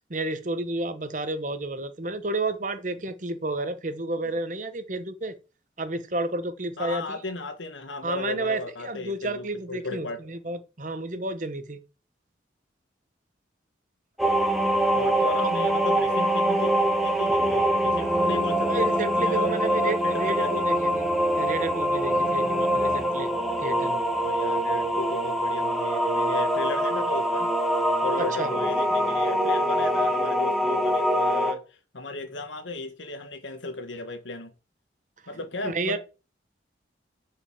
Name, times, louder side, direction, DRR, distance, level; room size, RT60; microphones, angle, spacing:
voice 1, 0.1-5.3 5.8-7.2 8.0-11.8 15.4-15.5 18.7-21.1 21.4-23.3 23.6-24.0 28.2-28.5 35.6-36.0, right 2 dB, 45° right, 1.0 m, -31 dB
voice 2, 6.8-10.4 14.9-18.9 19.2-20.7 24.2-27.5 28.0-34.5 35.3-36.0, left 2 dB, 90° left, 1.6 m, -35 dB
sound 1, 14.2-31.5, equal, ahead, 1.4 m, -24 dB
7.1 x 5.4 x 7.2 m
head